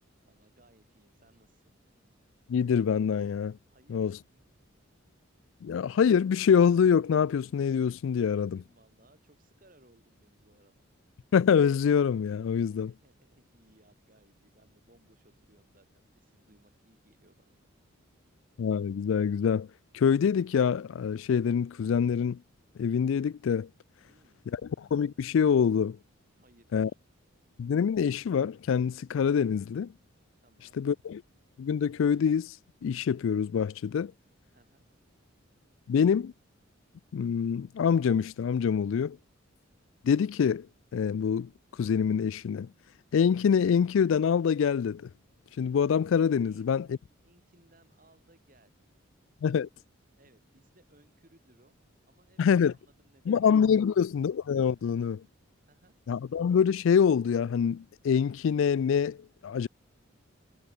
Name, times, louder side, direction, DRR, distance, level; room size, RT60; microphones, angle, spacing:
voice 1, 0.3-1.8 3.7-4.3 8.4-10.8 12.6-17.6 24.0-24.4 26.4-27.0 30.4-30.8 34.5-34.9 46.4-48.7 50.1-51.8 52.0-53.5 53.9-54.1 54.8-55.1 55.6-56.0, right 1 dB, 40° right, 4.6 m, -64 dB
voice 2, 2.5-3.6 3.9-4.2 5.6-8.6 11.3-12.9 18.6-19.7 19.9-22.4 22.8-23.7 24.5-26.0 26.7-26.9 27.6-29.9 30.7-31.2 31.6-32.6 32.8-34.1 35.9-36.3 37.1-39.2 40.0-40.7 40.9-41.5 41.8-42.7 43.1-45.1 45.6-47.0 49.4-49.7 52.4-52.7 53.3-55.2 56.1-59.2 59.4-59.7, left 7 dB, 70° left, 0.3 m, -25 dB
head